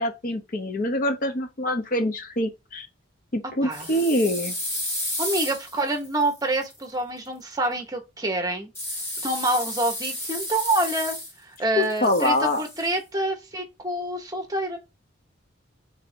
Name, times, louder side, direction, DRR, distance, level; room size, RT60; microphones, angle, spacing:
voice 1, 0.0-2.9 3.3-4.6 11.8-12.6, left 1 dB, 40° left, 0.6 m, -25 dB
sound 1, 3.7-6.8 8.7-11.6 11.8-12.9, left 1 dB, 10° left, 1.1 m, -32 dB
voice 2, 5.2-8.7 9.2-14.8, right 1 dB, 20° right, 0.9 m, -27 dB
4.0 x 2.6 x 4.3 m
head